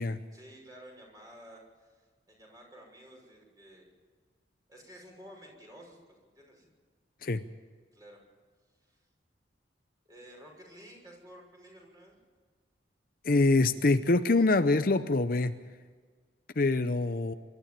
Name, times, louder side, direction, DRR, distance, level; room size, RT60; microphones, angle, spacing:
voice 1, 0.3-3.8 4.7-6.7 7.9-8.2 8.8-9.0 10.0-12.2, equal, 20° right, 0 dB, 6.1 m, -52 dB
voice 2, 13.2-15.6 16.6-17.3, left 2 dB, 50° left, 10 dB, 0.7 m, -25 dB
25.0 x 13.0 x 9.0 m, 1.6 s
head